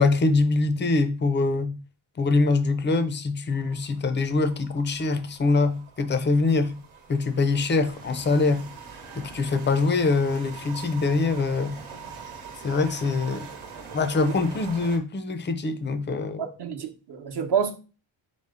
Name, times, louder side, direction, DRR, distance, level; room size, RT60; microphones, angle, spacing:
voice 1, 0.0-1.8 2.2-6.8 7.1-8.6 9.2-11.8 12.6-13.5 13.9-16.5, left 3 dB, 25° left, 0.3 m, -24 dB
sound 1, 3.5-15.0, right 5 dB, 85° right, 1.2 m, -43 dB
voice 2, 16.4-17.7, right 7 dB, 55° right, 0.8 m, -28 dB
5.5 x 2.0 x 4.8 m
wide cardioid pair, 170°, 49 cm